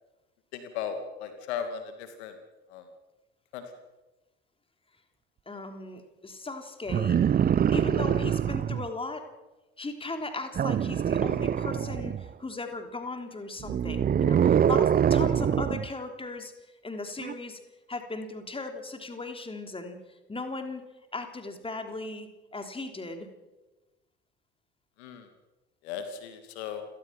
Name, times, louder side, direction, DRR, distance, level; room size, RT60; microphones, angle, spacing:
voice 1, 0.5-2.3 2.7-2.8 3.5-3.6 25.0-25.3 25.8-26.8, left 7 dB, 65° left, 8 dB, 2.6 m, -36 dB
voice 2, 5.5-7.2 7.7-9.3 9.8-16.5 16.8-17.6 17.9-20.0 20.3-20.8 21.1-23.3, left 3 dB, 15° left, 6 dB, 3.6 m, -37 dB
sound 1, 6.9-8.9 10.6-12.3 13.6-15.9 17.2-17.3, right 9 dB, 25° right, 0.7 m, -24 dB
29.0 x 18.5 x 6.0 m, 1.1 s
figure-of-eight pair, 60°, 35 cm